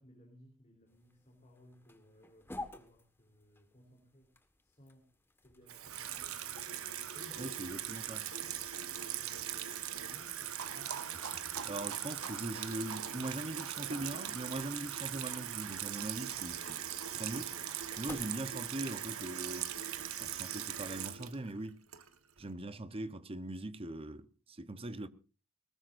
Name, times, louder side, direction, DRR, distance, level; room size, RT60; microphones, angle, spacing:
voice 1, 0.0-4.3 4.6-5.1 5.4-8.6 9.1-11.2, equal, 30° left, 3.3 m, -62 dB
sound 1, 0.9-18.9, left 2 dB, 10° left, 1.5 m, -55 dB
Water tap faucet / Sink (filling or washing), 5.7-22.4, right 10 dB, 65° right, 1.4 m, -40 dB
voice 2, 7.4-8.2 11.6-16.8 17.1-17.5 18.0-19.7 20.2-21.8 22.4-25.1, right 2 dB, 25° right, 0.9 m, -41 dB
sound 2, 10.6-19.7, right 5 dB, 85° right, 1.4 m, -49 dB
20.5 x 19.0 x 2.6 m
head